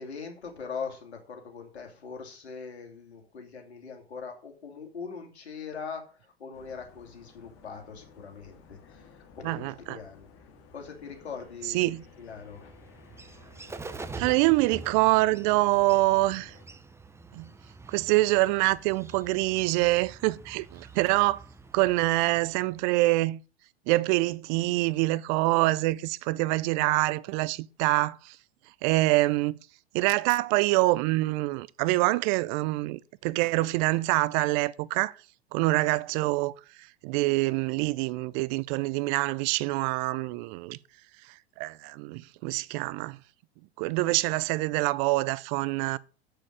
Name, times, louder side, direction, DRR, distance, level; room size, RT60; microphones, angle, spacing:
voice 1, 0.0-10.5 10.7-12.8, left 5 dB, 85° left, 2.8 m, -41 dB
sound 1, 6.5-16.6, left 5 dB, 45° left, 2.2 m, -55 dB
voice 2, 9.4-10.0 11.7-12.0 14.2-16.5 17.3-17.5 17.9-21.4 21.7-23.4 23.9-28.4 28.8-29.6 29.9-35.1 35.5-36.5 37.0-40.8 41.6-43.2 43.8-46.0, right 20 dB, 45° right, 0.5 m, -25 dB
Bird, 11.6-23.1, right 3 dB, 10° right, 0.8 m, -46 dB
7.5 x 6.7 x 7.5 m
hypercardioid pair, 105°, 32 cm